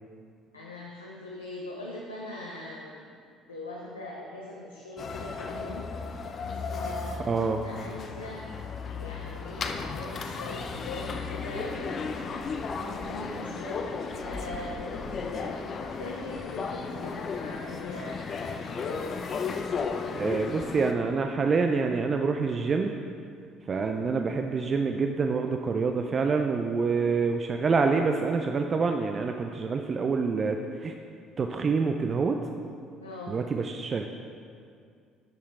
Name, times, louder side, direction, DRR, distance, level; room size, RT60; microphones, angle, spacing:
voice 1, 0.5-3.1 3.5-5.9 6.7-8.5 8.9-12.3 12.9-18.2 18.8-19.2 33.0-33.4, left 2 dB, 90° left, -3 dB, 0.6 m, -41 dB
sound 1, 5.0-20.9, left 5 dB, 45° left, 0.6 m, -35 dB
voice 2, 7.3-7.6 20.2-23.0 23.7-30.9 31.4-32.4 33.3-34.1, right 4 dB, 40° right, 4 dB, 0.4 m, -26 dB
11.5 x 6.4 x 3.7 m, 2.3 s
figure-of-eight pair, 55°, 0 cm